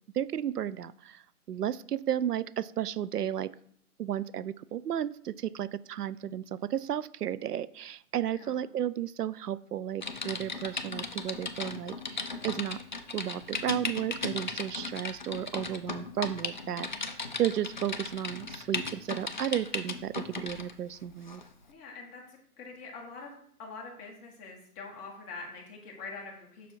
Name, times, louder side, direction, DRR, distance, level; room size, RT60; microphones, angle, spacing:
voice 1, 0.1-3.5 4.0-12.8 13.1-21.4, right 10 dB, 90° right, 18 dB, 0.6 m, -33 dB
voice 2, 8.4-8.7 21.7-23.3 23.6-26.7, left 4 dB, 15° left, -1 dB, 1.3 m, -44 dB
Typing, 10.0-20.7 21.3-21.5, left 3 dB, 35° left, 0.4 m, -37 dB
6.9 x 6.0 x 4.6 m, 0.65 s
hypercardioid pair, 145°, 46 cm